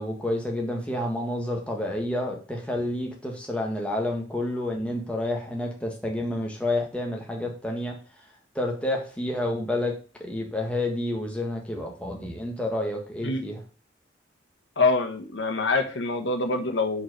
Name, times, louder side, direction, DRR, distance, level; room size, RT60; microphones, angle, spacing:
voice 1, 0.0-8.0 8.5-9.9 10.2-13.6, left 1 dB, 5° left, 0 dB, 1.6 m, -29 dB
voice 2, 14.8-17.0, left 3 dB, 85° left, 5 dB, 1.2 m, -25 dB
5.4 x 4.8 x 6.4 m, 0.36 s
head